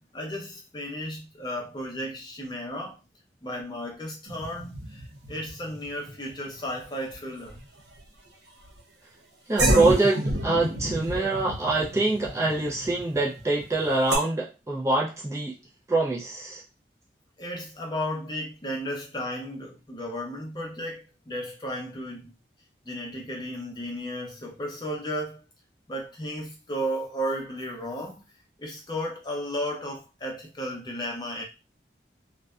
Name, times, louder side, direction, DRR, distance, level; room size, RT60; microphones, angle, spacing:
voice 1, 0.1-3.0 3.4-7.6 17.4-22.3 22.9-25.4 25.9-28.2 28.6-31.4, equal, 25° left, 0.6 m, -34 dB
sound 1, 4.3-7.1 7.4-8.0 8.6-8.8 9.6-14.2, right 1 dB, 85° right, 0.7 m, -30 dB
voice 2, 9.5-15.6 15.9-16.6, right 2 dB, 15° right, 0.4 m, -25 dB
2.6 x 2.1 x 2.3 m
head